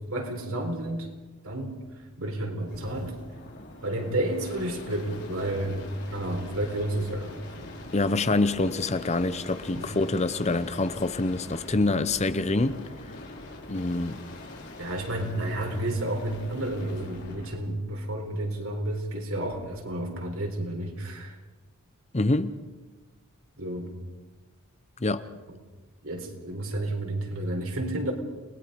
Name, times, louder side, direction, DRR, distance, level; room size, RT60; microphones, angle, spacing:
voice 1, 0.1-1.1 1.4-1.8 2.2-3.1 3.8-5.8 6.1-7.7 8.1-8.4 9.8-9.9 14.8-21.3 23.6-23.9 25.5-25.6 26.0-28.1, right 1 dB, 70° right, 4.2 m, -31 dB
sound 1, 2.6-17.7 19.4-19.9, left 1 dB, 50° left, 4.6 m, -43 dB
voice 2, 7.9-12.8 13.7-14.2 22.1-22.6 25.0-25.3, left 2 dB, 30° left, 0.8 m, -26 dB
30.0 x 20.5 x 5.3 m
head